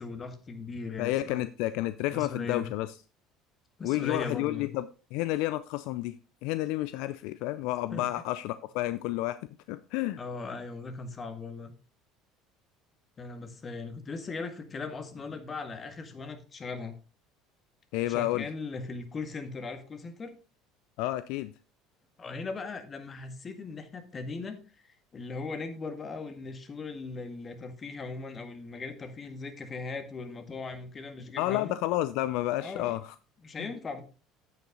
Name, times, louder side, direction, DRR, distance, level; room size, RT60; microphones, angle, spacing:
voice 1, 0.0-1.4 2.1-2.7 3.8-4.7 7.9-8.1 10.2-11.7 13.2-16.9 18.1-20.3 22.2-24.6 24.9-31.8 32.6-33.0 33.4-34.0, left 4 dB, 35° left, 1.9 m, -39 dB
voice 2, 1.0-3.0 3.8-6.2 6.4-9.4 9.7-10.2 17.9-18.5 21.0-21.5 31.4-33.1 33.6-33.7, left 16 dB, 70° left, 0.4 m, -30 dB
8.9 x 8.5 x 3.8 m
hypercardioid pair, 70°, 0 cm